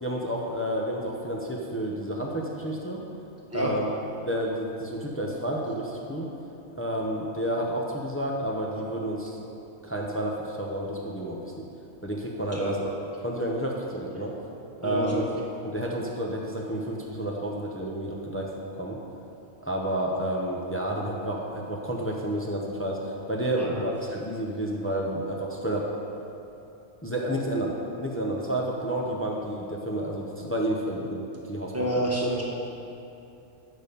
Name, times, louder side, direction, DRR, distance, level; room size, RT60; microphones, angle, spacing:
voice 1, 0.0-3.0 3.5-3.9 4.3-6.3 6.8-9.4 9.8-11.7 12.0-12.9 13.2-14.3 14.8-15.3 15.6-18.5 18.8-19.0 19.6-25.9 27.0-31.2 31.5-32.0, right 1 dB, 15° left, -2 dB, 0.7 m, -30 dB
voice 2, 14.8-15.3 23.5-23.9 31.7-32.4, right 1 dB, 10° right, -4 dB, 1.4 m, -28 dB
8.9 x 6.5 x 5.3 m, 2.9 s
omnidirectional pair, 1.3 m